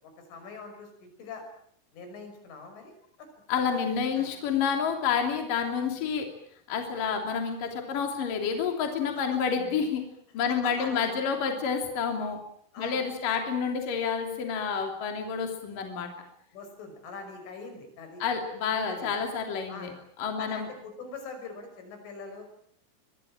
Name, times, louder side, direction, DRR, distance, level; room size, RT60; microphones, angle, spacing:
voice 1, 0.0-1.4 1.9-2.9 4.1-4.3 10.6-11.4 12.7-13.0 16.5-18.2 18.9-19.1 19.7-19.9 20.4-22.4, left 4 dB, 75° left, 6 dB, 8.5 m, -43 dB
voice 2, 3.5-6.3 6.7-10.0 10.3-12.4 12.8-16.1 18.2-19.9 20.2-20.7, left 6 dB, 45° left, 4 dB, 4.3 m, -29 dB
24.0 x 23.5 x 8.9 m, 0.67 s
omnidirectional pair, 5.7 m